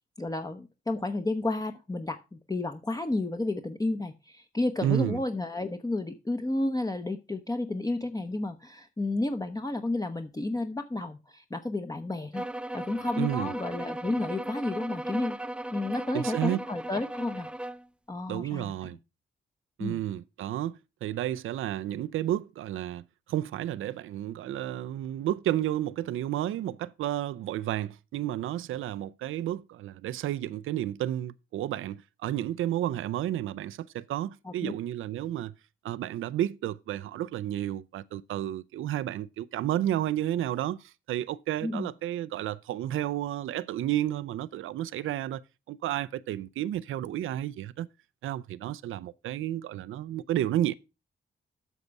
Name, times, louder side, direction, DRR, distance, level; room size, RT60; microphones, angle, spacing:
voice 1, 0.2-12.5 12.7-15.4 15.7-17.5 18.1-18.9 19.8-20.0 34.4-34.7 41.6-41.9, left 2 dB, 15° left, 0.9 m, -31 dB
voice 2, 4.8-5.2 13.2-13.5 16.1-16.6 18.3-19.0 19.8-35.5 35.8-45.4 45.7-47.9 48.2-50.7, right 12 dB, 80° right, 0.4 m, -31 dB
sound 1, 12.3-17.9, right 1 dB, 5° right, 0.4 m, -37 dB
8.3 x 5.8 x 5.3 m
cardioid pair, 55°, 20 cm